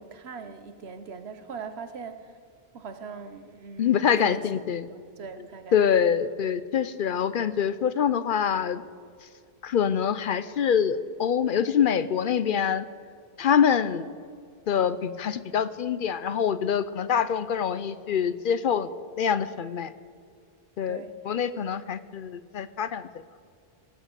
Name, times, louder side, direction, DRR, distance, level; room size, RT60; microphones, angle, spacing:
voice 1, 0.0-2.4 2.7-4.6 4.9-6.1 20.9-21.2 21.6-21.9, right 5 dB, 80° right, 9 dB, 1.3 m, -41 dB
voice 2, 3.8-4.9 5.7-8.8 9.6-12.9 13.4-14.1 14.7-18.9 19.2-19.9 20.8-23.0, left 8 dB, 60° left, 15 dB, 0.7 m, -25 dB
19.0 x 8.1 x 8.1 m, 2.2 s
omnidirectional pair, 1.1 m